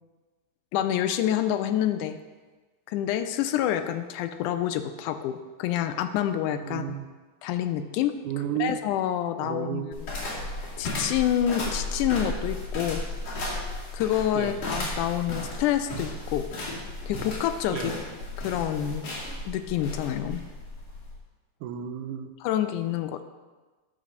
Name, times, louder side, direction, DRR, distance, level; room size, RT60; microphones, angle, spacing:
voice 1, 0.7-2.2 2.9-7.0 7.4-8.2 8.6-10.1 10.8-13.0 13.9-16.5 17.1-18.0 18.4-19.1 19.5-20.4 22.4-23.2, left 11 dB, 85° left, 9 dB, 2.1 m, -27 dB
voice 2, 6.6-7.1 8.3-8.8 9.4-9.9 14.4-14.6 17.7-17.9 21.6-22.3, right 10 dB, 85° right, 7 dB, 2.2 m, -32 dB
sound 1, 9.9-21.2, left 1 dB, 55° left, 3.4 m, -34 dB
11.0 x 4.1 x 6.4 m, 1.3 s
omnidirectional pair, 3.5 m